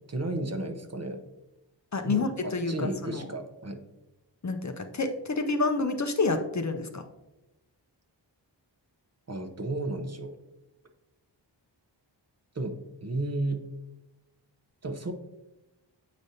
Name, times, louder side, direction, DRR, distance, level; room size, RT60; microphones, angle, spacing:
voice 1, 0.1-1.2 2.0-3.8 9.3-10.3 12.5-12.8 13.0-13.6 14.8-15.1, right 2 dB, 35° right, 5 dB, 0.6 m, -33 dB
voice 2, 1.9-3.3 4.4-7.0, left 3 dB, 40° left, 6 dB, 0.5 m, -29 dB
7.5 x 5.0 x 2.7 m, 0.97 s
wide cardioid pair, 75°, 44 cm